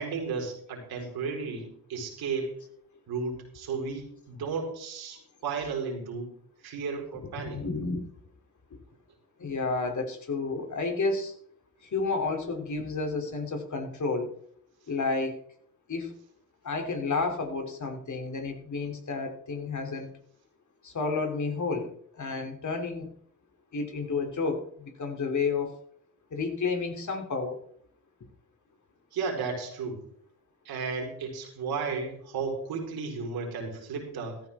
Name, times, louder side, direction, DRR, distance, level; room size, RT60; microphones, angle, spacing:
voice 1, 0.0-2.5 3.1-6.3 6.6-7.6 29.1-30.0 30.6-34.4, right 5 dB, 80° right, 1 dB, 4.8 m, -34 dB
voice 2, 7.4-8.0 9.4-11.3 11.8-14.3 14.9-15.4 15.9-16.1 16.6-20.1 20.8-23.1 23.7-25.7 26.3-27.6, left 4 dB, 50° left, 4 dB, 3.3 m, -31 dB
14.5 x 14.0 x 3.7 m, 0.63 s
supercardioid pair, 50°, 37 cm